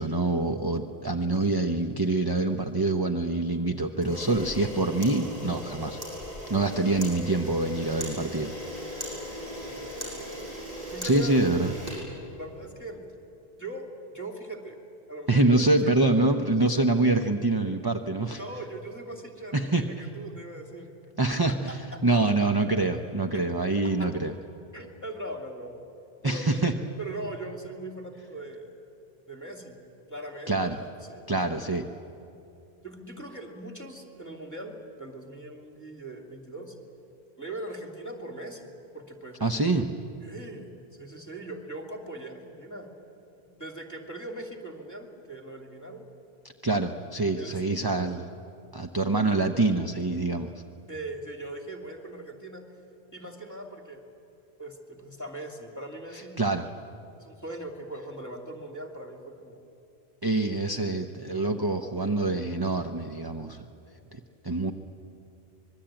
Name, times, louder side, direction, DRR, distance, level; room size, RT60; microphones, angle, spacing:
voice 1, 0.0-6.0 6.5-8.5 11.0-11.7 15.3-18.4 19.5-20.1 21.2-24.3 26.2-26.7 30.5-30.8 31.3-31.9 39.4-39.9 46.6-48.2 48.7-50.5 56.1-56.7 60.2-63.6 64.1-64.7, right 2 dB, 25° right, 6 dB, 0.8 m, -25 dB
Camera, 4.0-12.7, equal, 40° right, 7.5 m, -38 dB
voice 2, 9.2-10.4 10.9-11.4 12.4-13.0 13.6-14.8 15.1-15.9 18.4-20.9 21.7-22.0 23.8-24.1 24.7-25.8 26.2-26.6 27.0-28.9 29.3-29.8 30.1-31.7 32.8-36.8 37.4-39.4 40.2-40.7 41.0-42.9 43.6-46.1 47.4-48.1 50.9-52.7 53.1-54.0 54.6-56.5 57.2-59.6, right 2 dB, 15° left, 3 dB, 2.7 m, -40 dB
25.0 x 21.5 x 8.9 m, 2.8 s
omnidirectional pair, 1.1 m